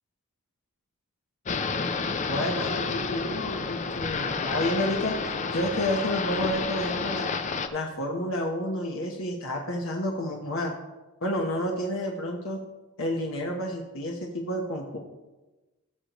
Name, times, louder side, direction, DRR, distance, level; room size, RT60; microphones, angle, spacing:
sound 1, 1.5-7.7, left 4 dB, 35° left, 0.5 m, -30 dB
voice 1, 2.3-5.1 5.5-7.3 7.7-10.7 11.2-12.6 13.0-15.0, left 1 dB, 65° left, 0 dB, 1.1 m, -30 dB
17.5 x 6.6 x 3.0 m, 1.1 s
head